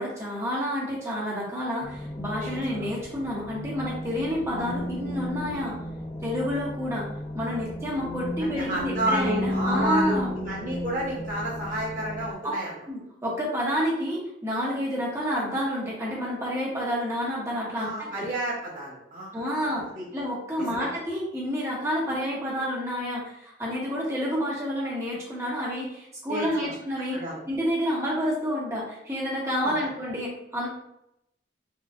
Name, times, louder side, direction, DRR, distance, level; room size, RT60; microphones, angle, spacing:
voice 1, 0.0-5.7 6.2-7.1 7.3-10.3 12.4-12.6 12.9-18.2 19.3-19.8 20.1-27.2 27.5-30.7, equal, 15° right, -5 dB, 1.1 m, -29 dB
sound 1, 1.8-12.3, left 1 dB, 30° left, 0.4 m, -33 dB
voice 2, 2.4-2.8 4.5-4.7 8.4-12.7 17.7-20.0 20.6-20.9 26.3-26.7 27.1-27.4 29.8-29.9, right 1 dB, 45° right, -8 dB, 1.1 m, -31 dB
4.6 x 2.4 x 2.5 m, 0.80 s
head